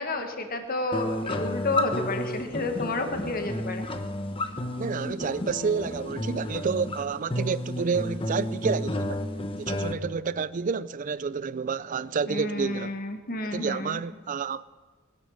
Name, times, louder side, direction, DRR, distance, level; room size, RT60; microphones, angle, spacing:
voice 1, 0.0-3.9 12.2-14.0, left 2 dB, 45° left, 1.5 m, -31 dB
sound 1, 0.9-9.9, left 1 dB, 25° left, 0.9 m, -31 dB
voice 2, 4.8-9.3 9.6-13.0 13.5-14.6, right 5 dB, 40° right, 0.4 m, -29 dB
19.5 x 9.8 x 6.4 m
head